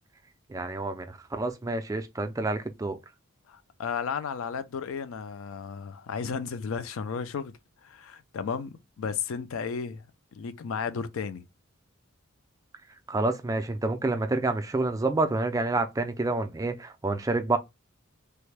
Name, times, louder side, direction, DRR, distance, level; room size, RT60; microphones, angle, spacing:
voice 1, 0.5-3.0 13.1-17.6, right 2 dB, 15° right, 0.3 m, -28 dB
voice 2, 3.5-7.5 7.8-10.0 10.3-11.4, left 6 dB, 70° left, 0.4 m, -34 dB
3.3 x 2.1 x 3.2 m
head